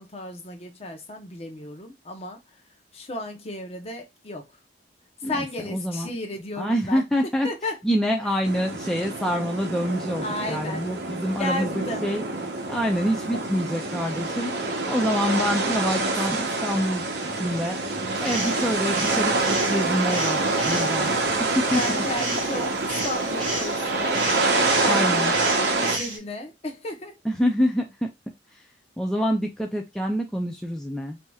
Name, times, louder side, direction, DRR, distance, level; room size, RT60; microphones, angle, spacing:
voice 1, 0.0-2.6 2.9-4.5 5.2-7.8 8.2-8.4 10.2-10.9 11.4-12.0 15.0-15.6 15.9-16.2 21.7-24.2 24.8-25.4 25.8-27.2, left 1 dB, 35° left, 0.8 m, -34 dB
voice 2, 5.7-6.1 6.6-7.5 7.8-11.7 12.0-12.2 12.7-14.5 14.9-17.1 17.3-17.8 18.2-19.3 19.7-21.8 24.9-25.3 27.3-28.1 29.0-31.2, equal, 5° left, 0.4 m, -26 dB
sound 1, 8.4-26.0, right 3 dB, 65° right, 0.8 m, -26 dB
sound 2, 18.1-26.2, right 2 dB, 50° right, 1.7 m, -34 dB
4.6 x 2.8 x 2.3 m
head